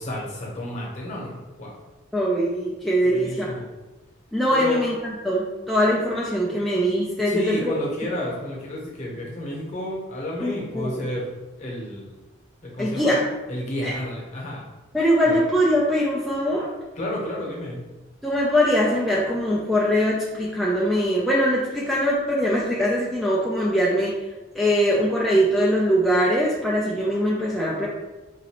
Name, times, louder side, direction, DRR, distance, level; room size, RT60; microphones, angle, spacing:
voice 1, 0.0-1.7 3.1-3.7 4.5-4.8 7.2-11.3 11.6-12.1 12.6-13.2 13.5-14.6 15.3-15.4 17.0-17.8, left 1 dB, 35° left, -3 dB, 0.9 m, -31 dB
voice 2, 2.1-3.5 4.3-7.7 10.4-11.1 12.8-13.2 13.8-13.9 14.9-16.7 18.2-24.1 24.6-27.9, equal, ahead, -6 dB, 0.3 m, -22 dB
4.0 x 2.6 x 2.9 m, 1.1 s
head